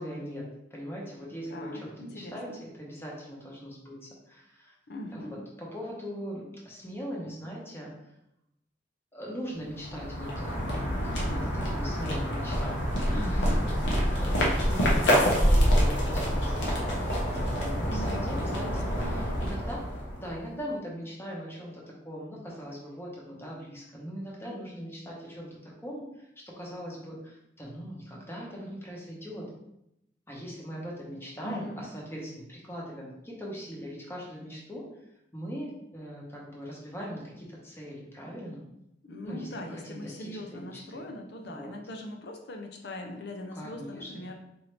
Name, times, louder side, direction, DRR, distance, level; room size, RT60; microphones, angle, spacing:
voice 1, 0.0-4.7 5.1-7.9 9.1-10.6 11.2-19.9 20.2-29.5 30.3-34.9 35.3-38.6 39.2-41.0 41.4-41.8 43.5-44.3, equal, 15° left, -3 dB, 0.9 m, -40 dB
voice 2, 1.5-2.6 4.9-5.4 13.1-13.7 17.9-19.6 31.4-31.8 39.0-44.4, left 1 dB, 65° left, 3 dB, 0.6 m, -40 dB
sound 1, 9.7-20.4, equal, 90° left, 1.0 m, -27 dB
4.3 x 2.7 x 3.2 m, 0.82 s
head